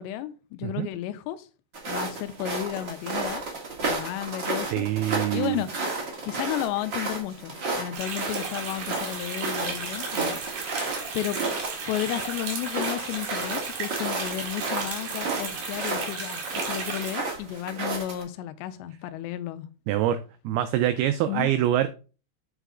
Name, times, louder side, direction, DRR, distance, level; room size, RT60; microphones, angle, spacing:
voice 1, 0.0-1.5 1.9-3.4 3.8-4.9 5.3-5.7 6.2-10.4 11.1-11.4 11.9-16.4 16.7-19.7 21.3-21.5, left 12 dB, 85° left, 2.8 m, -33 dB
sound 1, 1.7-18.2, right 3 dB, 45° right, 1.4 m, -33 dB
voice 2, 4.7-5.6 19.9-21.9, right 12 dB, 90° right, 2.2 m, -25 dB
sound 2, 7.9-17.2, right 4 dB, 65° right, 3.7 m, -35 dB
8.2 x 5.0 x 3.7 m
omnidirectional pair, 5.1 m